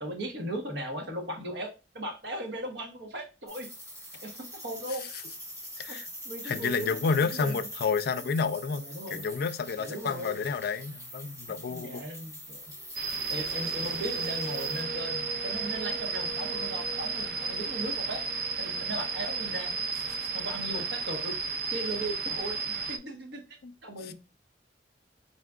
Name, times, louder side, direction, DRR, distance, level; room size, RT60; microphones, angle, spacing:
voice 1, 0.0-3.7 4.2-5.1 5.9-6.0 6.2-7.7 8.7-9.2 9.8-10.4 11.7-12.7 13.3-18.2 18.6-19.7 20.3-21.4 21.7-24.1, right 1 dB, 75° right, 1.1 m, -37 dB
sound 1, 3.5-14.8, equal, 20° right, 2.2 m, -44 dB
voice 2, 6.4-8.8 9.1-12.0 23.6-23.7 24.0-24.1, left 5 dB, 60° left, 0.3 m, -30 dB
sound 2, 12.7-21.1, right 3 dB, ahead, 1.4 m, -45 dB
sound 3, 13.0-23.0, right 4 dB, 60° right, 0.4 m, -33 dB
4.1 x 3.7 x 2.4 m
head